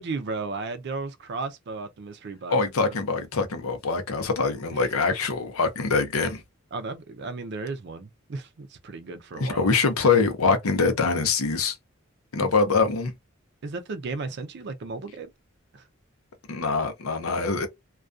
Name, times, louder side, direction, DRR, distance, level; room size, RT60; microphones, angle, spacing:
voice 1, 0.0-2.9 6.7-9.7 12.4-12.5 13.6-15.3 15.7-15.8, right 3 dB, 55° right, 0.4 m, -34 dB
voice 2, 2.5-6.4 9.4-11.8 12.3-13.1 16.5-17.7, left 4 dB, 90° left, 0.6 m, -24 dB
2.3 x 2.2 x 2.5 m
head